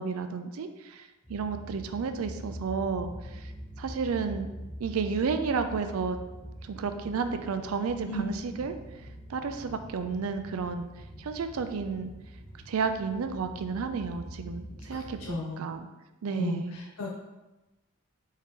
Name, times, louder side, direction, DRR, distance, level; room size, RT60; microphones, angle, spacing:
voice 1, 0.0-3.5 3.8-4.5 4.8-6.2 6.6-8.7 9.3-10.9 11.2-12.1 12.7-15.9 16.2-16.8, right 5 dB, 80° right, 8 dB, 0.4 m, -32 dB
sound 1, 1.2-15.3, equal, 10° left, 1.1 m, -44 dB
voice 2, 14.9-15.6 16.3-17.2, left 2 dB, 75° left, -2 dB, 0.5 m, -35 dB
4.7 x 2.8 x 3.7 m, 1.1 s
head